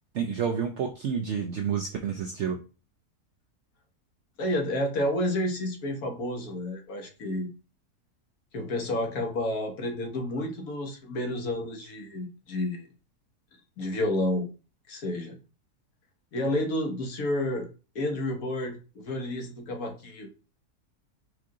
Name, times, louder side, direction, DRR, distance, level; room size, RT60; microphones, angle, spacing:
voice 1, 0.1-2.6, right 7 dB, 70° right, 4 dB, 0.6 m, -29 dB
voice 2, 4.4-7.5 8.5-12.9 13.8-14.5 14.9-15.4 16.3-17.7 17.9-20.3, left 1 dB, 65° left, 2 dB, 1.4 m, -30 dB
4.6 x 2.5 x 3.6 m, 0.34 s
omnidirectional pair, 1.7 m